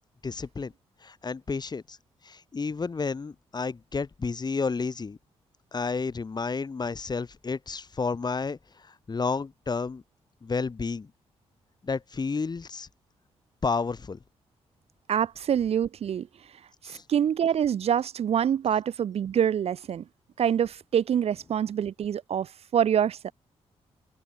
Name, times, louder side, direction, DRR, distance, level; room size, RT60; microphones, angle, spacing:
voice 1, 0.2-0.7 1.0-2.0 2.2-5.2 5.7-10.0 10.4-11.1 11.8-12.9 13.6-14.2 16.8-17.0, left 4 dB, 40° left, 5.7 m, -31 dB
voice 2, 15.1-16.3 16.8-20.0 20.4-23.3, right 9 dB, 65° right, 0.9 m, -26 dB
open air
cardioid pair, 75°, 11 cm